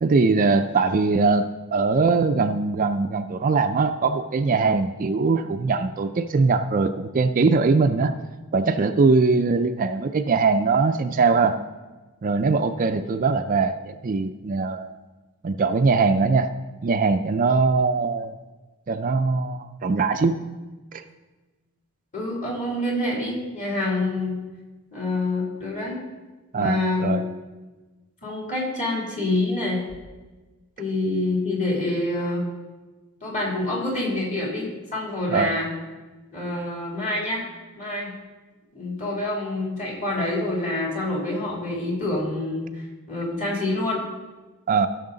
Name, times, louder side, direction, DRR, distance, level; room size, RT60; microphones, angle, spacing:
voice 1, 0.0-8.1 8.5-11.6 12.2-15.0 15.4-16.5 16.8-18.3 18.9-20.4 20.9-21.0 26.5-27.2 35.3-35.5 44.7-44.9, right 4 dB, 40° right, 8 dB, 0.4 m, -21 dB
voice 2, 22.1-24.4 24.9-26.0 26.5-27.2 28.2-29.8 30.8-32.5 33.2-35.7 36.3-37.4 37.8-38.1 38.7-42.7 43.1-44.0, left 2 dB, 35° left, -3 dB, 2.9 m, -26 dB
14.5 x 6.5 x 3.9 m, 1.2 s
head